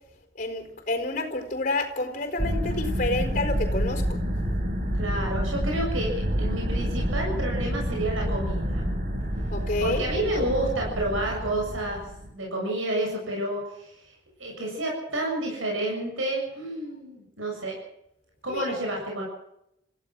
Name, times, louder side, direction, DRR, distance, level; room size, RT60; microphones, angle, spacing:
voice 1, 0.4-4.2 9.5-10.0 18.5-18.6, left 2 dB, 40° left, 5 dB, 4.3 m, -29 dB
sound 1, 2.4-12.3, equal, 40° right, 4.4 m, -28 dB
voice 2, 4.9-6.1 6.4-8.8 9.8-12.0 12.3-14.1 14.4-17.7 18.4-19.3, right 1 dB, 90° right, -1 dB, 7.5 m, -30 dB
27.5 x 16.0 x 6.2 m, 0.80 s
head